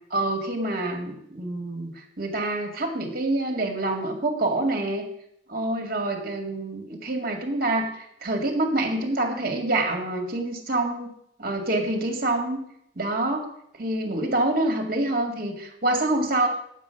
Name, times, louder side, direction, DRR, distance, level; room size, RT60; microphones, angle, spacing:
voice 1, 0.1-5.0 5.5-11.1 11.4-12.6 13.0-13.5 13.8-16.5, right 2 dB, 55° right, 2 dB, 2.0 m, -26 dB
8.6 x 7.4 x 5.8 m, 0.74 s
head